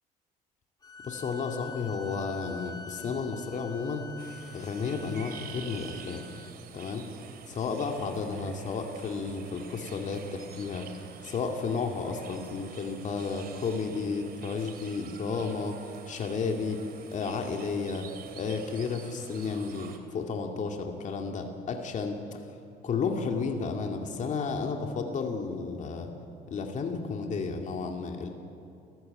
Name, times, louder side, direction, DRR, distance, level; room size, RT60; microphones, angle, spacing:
sound 1, 0.8-6.5, left 4 dB, 25° left, 2.2 m, -46 dB
voice 1, 1.0-4.1 4.5-6.2 6.7-7.0 7.5-10.8 11.2-15.8 16.1-16.8 17.1-18.1 18.4-22.4 22.8-26.1 26.5-28.3, left 4 dB, 45° left, 3 dB, 2.3 m, -32 dB
sound 2, 4.2-20.0, right 7 dB, 65° right, 2.7 m, -47 dB
29.5 x 15.0 x 8.9 m, 2.6 s
cardioid pair, 110°, 17 cm